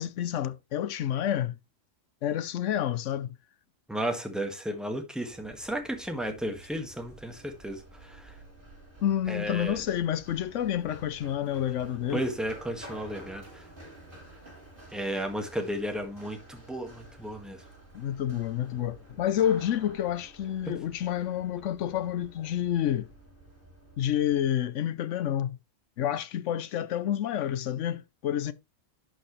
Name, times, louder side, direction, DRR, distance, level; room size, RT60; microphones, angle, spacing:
voice 1, 0.0-1.5 2.2-3.3 9.0-12.2 17.9-23.1 24.0-25.6 26.0-28.5, left 10 dB, 75° left, 1.0 m, -29 dB
voice 2, 3.9-8.3 9.3-9.8 12.1-13.6 14.9-17.6, right 1 dB, ahead, 1.6 m, -34 dB
Run, 5.3-24.4, right 1 dB, 40° right, 5.0 m, -51 dB
11.5 x 6.4 x 3.2 m
omnidirectional pair, 1.3 m